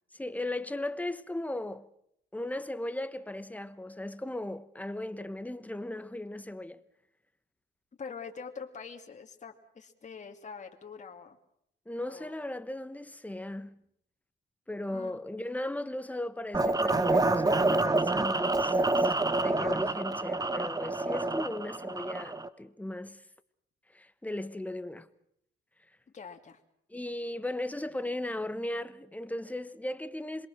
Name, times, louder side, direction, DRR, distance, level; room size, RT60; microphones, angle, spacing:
voice 1, 0.1-1.9 2.3-6.8 11.9-13.8 14.7-23.2 23.9-25.1 26.9-30.5, left 1 dB, 5° left, 1.3 m, -37 dB
voice 2, 8.0-11.4 12.0-12.3 14.9-15.2 26.1-26.6, left 5 dB, 35° left, 2.5 m, -44 dB
sound 1, 16.5-22.5, right 2 dB, 20° right, 1.1 m, -27 dB
27.0 x 22.0 x 6.4 m
cardioid pair, 90°, 20 cm